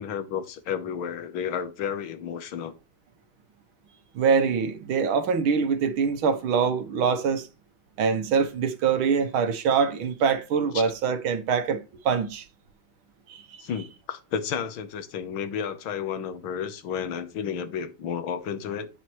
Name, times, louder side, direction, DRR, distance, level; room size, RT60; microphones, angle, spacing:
voice 1, 0.0-2.7 10.7-10.9 13.6-18.9, left 7 dB, 75° left, 1.8 m, -32 dB
voice 2, 4.2-7.5 8.0-12.5 13.3-13.4, right 6 dB, 75° right, 1.7 m, -24 dB
8.7 x 7.4 x 3.0 m
omnidirectional pair, 2.3 m